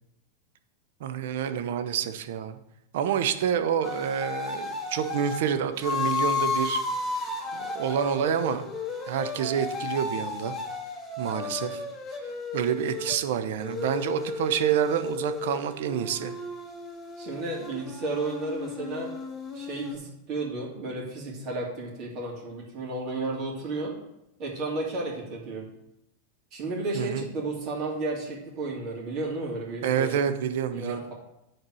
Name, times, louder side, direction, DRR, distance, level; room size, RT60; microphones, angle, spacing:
voice 1, 1.0-2.6 2.9-6.8 7.5-8.7 9.1-10.5 11.2-11.8 12.5-16.3 26.9-27.3 29.8-31.0, right 9 dB, 65° right, 9 dB, 0.7 m, -28 dB
sound 1, 3.8-5.4 5.8-13.2 13.6-19.9, left 4 dB, 15° left, 1.6 m, -33 dB
voice 2, 17.2-19.1 19.5-24.0 24.4-25.7 26.5-30.2 30.7-31.1, right 2 dB, 45° right, -3 dB, 2.9 m, -33 dB
7.5 x 4.6 x 6.2 m, 0.87 s
hypercardioid pair, 100°, 0 cm